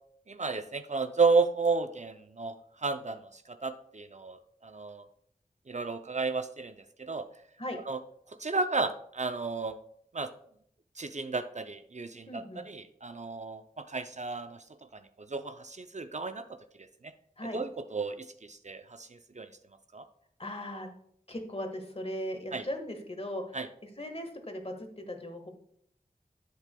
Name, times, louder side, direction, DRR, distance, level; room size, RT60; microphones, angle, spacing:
voice 1, 0.3-5.1 5.7-7.3 7.9-8.0 8.4-9.8 10.1-10.3 11.0-14.6 15.2-16.4 16.8-17.1 17.5-19.5 19.9-20.1 22.5-22.6 23.5-23.7, right 4 dB, 45° right, 9 dB, 0.5 m, -32 dB
voice 2, 12.3-12.6 17.4-17.6 20.4-20.9 21.3-25.5, left 1 dB, 35° left, 4 dB, 1.5 m, -38 dB
11.0 x 7.4 x 2.2 m, 0.68 s
wide cardioid pair, 55°, 16 cm